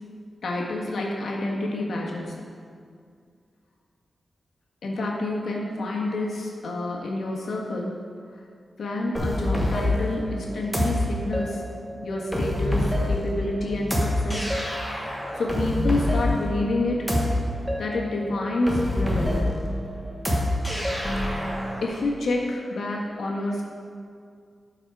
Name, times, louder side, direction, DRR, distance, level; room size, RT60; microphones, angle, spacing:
voice 1, 0.4-2.4 4.8-8.0 8.8-11.6 12.0-14.5 15.3-17.1 17.8-19.5 21.8-23.6, left 2 dB, 70° left, -2 dB, 1.5 m, -28 dB
sound 1, 9.1-21.8, left 1 dB, ahead, 1.3 m, -26 dB
12.0 x 4.9 x 4.8 m, 2.2 s
wide cardioid pair, 170°, 0 cm